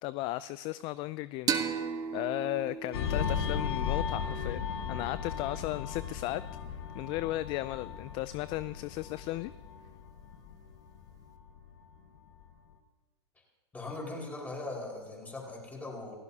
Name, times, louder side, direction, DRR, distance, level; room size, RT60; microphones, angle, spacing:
voice 1, 0.0-1.7 2.1-6.4 6.9-9.5, left 17 dB, 35° left, 17 dB, 0.4 m, -35 dB
sound 1, 1.5-4.8, right 7 dB, 25° right, 1.3 m, -36 dB
sound 2, 2.9-12.0 12.3-12.6, left 7 dB, 65° left, 1.5 m, -36 dB
voice 2, 13.7-16.1, left 2 dB, 10° left, -2 dB, 5.0 m, -40 dB
30.0 x 16.0 x 2.8 m, 1.5 s
hypercardioid pair, 115°, 14 cm